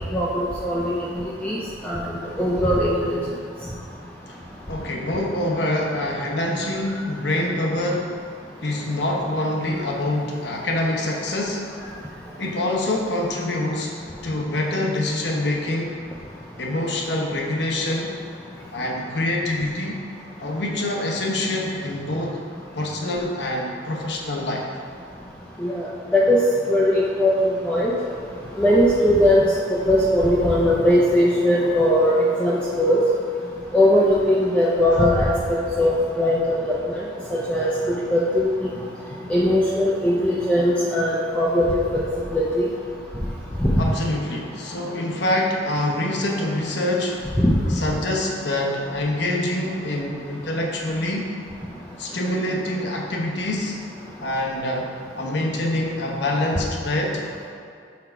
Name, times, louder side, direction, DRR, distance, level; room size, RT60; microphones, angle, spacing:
voice 1, 0.1-1.1 1.4-2.1 2.4-3.2 25.6-25.9 26.1-26.4 26.7-27.9 28.6-33.0 33.7-37.0 37.3-38.8 39.3-42.0 42.3-42.7 43.6-43.9 47.4-47.8, left 1 dB, 5° left, -6 dB, 0.5 m, -20 dB
voice 2, 4.7-8.1 8.6-11.6 12.4-13.9 14.2-16.0 16.6-18.2 18.7-20.0 20.4-22.4 22.7-24.6 43.8-47.2 47.7-51.3 52.0-53.8 54.2-57.2, left 1 dB, 65° left, 0 dB, 0.9 m, -25 dB
6.0 x 4.5 x 4.6 m, 2.3 s
head